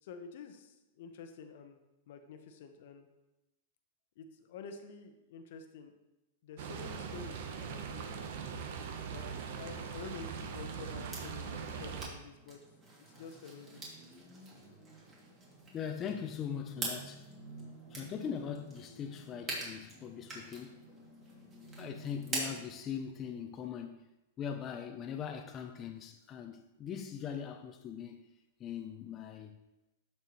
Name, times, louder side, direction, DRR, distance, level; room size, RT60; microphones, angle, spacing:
voice 1, 0.0-1.8 2.1-3.1 4.2-5.9 6.4-8.4 9.1-9.3 9.5-12.6 13.0-13.8, left 5 dB, 65° left, 0.9 m, -49 dB
sound 1, 6.6-12.1, right 6 dB, 65° right, 0.8 m, -41 dB
sound 2, 11.1-22.7, right 2 dB, 25° right, 2.5 m, -45 dB
voice 2, 15.7-17.3 17.9-20.8 21.8-24.1 24.4-28.3 28.6-29.6, left 8 dB, 30° left, 0.5 m, -41 dB
12.5 x 4.5 x 3.0 m
hypercardioid pair, 125°, 0 cm